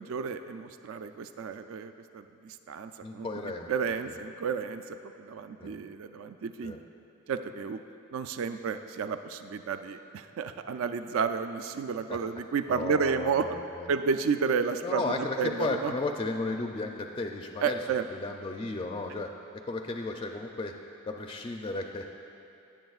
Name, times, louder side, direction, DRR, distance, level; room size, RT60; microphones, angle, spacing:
voice 1, 0.0-3.3 3.7-6.8 7.3-7.8 8.1-13.5 13.9-15.9 17.6-18.0, right 5 dB, 70° right, 9 dB, 0.3 m, -31 dB
voice 2, 3.0-3.7 5.6-5.8 6.6-6.8 12.1-12.2 12.7-13.9 14.8-17.8 18.1-20.8 21.1-22.1, left 3 dB, 25° left, 3 dB, 0.4 m, -34 dB
18.0 x 7.4 x 2.4 m, 2.7 s
head